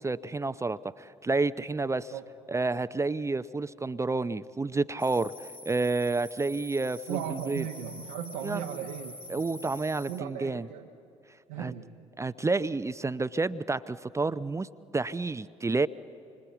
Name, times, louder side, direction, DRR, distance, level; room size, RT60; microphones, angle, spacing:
voice 1, 0.0-2.1 2.5-7.6 8.4-8.6 9.3-10.7 11.6-11.7 12.2-14.7 14.9-15.9, right 3 dB, 20° right, 14 dB, 0.6 m, -30 dB
sound 1, 5.0-10.2, left 1 dB, 10° left, 1.9 m, -46 dB
voice 2, 7.1-9.7 10.1-10.9 11.5-11.9, right 9 dB, 80° right, 2 dB, 1.0 m, -37 dB
26.5 x 25.0 x 8.3 m, 2.6 s
hypercardioid pair, 50°, 16 cm